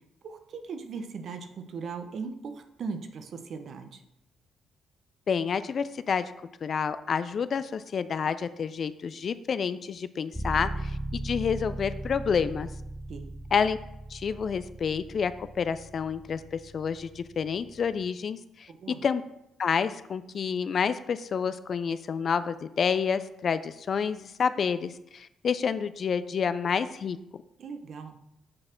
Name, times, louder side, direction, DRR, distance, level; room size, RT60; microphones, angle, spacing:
voice 1, 0.2-4.0 13.1-13.3 18.7-19.0 27.6-28.2, right 5 dB, 60° right, 7 dB, 0.8 m, -38 dB
voice 2, 5.3-6.3 6.6-12.7 13.5-13.8 14.1-15.3 15.6-18.7 19.0-19.2 19.6-27.2, left 6 dB, 50° left, 13 dB, 0.4 m, -29 dB
sound 1, 10.3-18.1, right 1 dB, 5° right, 0.7 m, -38 dB
7.6 x 4.1 x 4.4 m, 0.84 s
cardioid pair, 90°, 0 cm